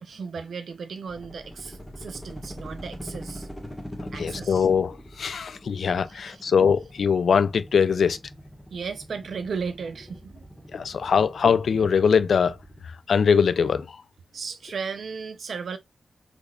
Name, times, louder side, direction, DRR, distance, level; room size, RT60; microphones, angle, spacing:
voice 1, 0.0-3.5 4.1-4.7 6.1-6.5 8.7-10.6 11.0-11.1 14.3-15.8, right 5 dB, 80° right, 0.6 m, -35 dB
sound 1, 1.1-12.8, equal, 15° left, 1.5 m, -42 dB
voice 2, 4.2-8.2 10.7-12.6 13.1-13.9, left 6 dB, 80° left, 0.3 m, -22 dB
3.6 x 3.3 x 2.4 m
wide cardioid pair, 100°, 0 cm